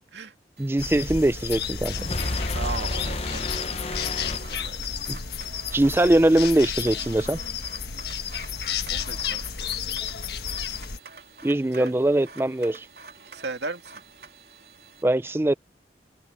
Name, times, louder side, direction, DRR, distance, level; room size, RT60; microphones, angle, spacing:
voice 1, 0.6-1.9 5.1-5.2 5.7-7.4 11.4-12.9 15.0-15.5, right 1 dB, 15° right, 0.4 m, -21 dB
sound 1, 0.6-15.0, right 4 dB, 60° right, 3.3 m, -47 dB
sound 2, 0.8-11.0, left 7 dB, 70° left, 1.4 m, -32 dB
sound 3, 1.4-5.2, left 2 dB, 35° left, 1.1 m, -31 dB
voice 2, 2.5-3.5 4.4-4.8 8.9-9.4 11.8-11.9 13.3-14.0, right 3 dB, 85° right, 2.4 m, -35 dB
open air
head